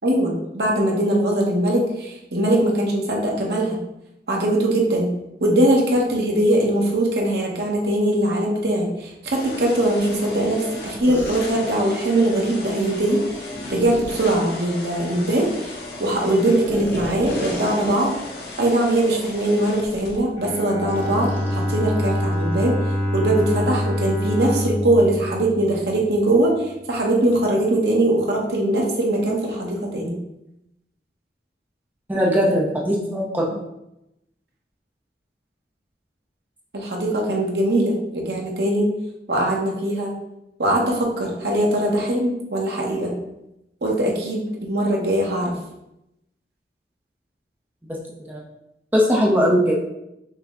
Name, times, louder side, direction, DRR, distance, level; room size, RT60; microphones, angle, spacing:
voice 1, 0.0-3.8 4.3-5.1 5.4-15.7 16.0-18.2 18.6-22.8 23.1-30.2 36.7-38.9 39.3-40.1 40.6-43.1 43.8-45.5, right 1 dB, 65° right, -1 dB, 1.0 m, -21 dB
sound 1, 9.3-20.2, left 2 dB, 65° left, 0.8 m, -36 dB
sound 2, 11.0-11.4 13.5-14.2 16.6-18.3 18.7-18.9 19.4-19.6 20.9-22.7, equal, 10° left, 0.9 m, -32 dB
Bowed string instrument, 20.4-26.3, equal, 45° left, 1.5 m, -25 dB
voice 2, 32.1-33.6 48.3-48.4 48.9-49.7, equal, 10° right, -3 dB, 0.6 m, -19 dB
5.8 x 2.2 x 3.6 m, 0.87 s
head